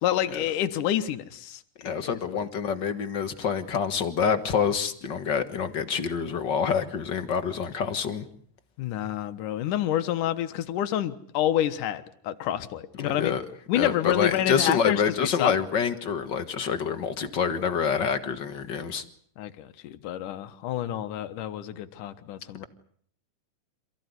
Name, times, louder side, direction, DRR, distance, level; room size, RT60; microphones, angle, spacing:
voice 1, 0.0-2.2 8.8-13.3 13.7-15.5 19.4-22.7, left 11 dB, 80° left, 10 dB, 2.8 m, -28 dB
voice 2, 1.8-8.2 13.0-13.4 13.7-19.0, left 6 dB, 45° left, 9 dB, 1.7 m, -27 dB
27.5 x 16.5 x 9.7 m, 0.62 s
omnidirectional pair, 3.7 m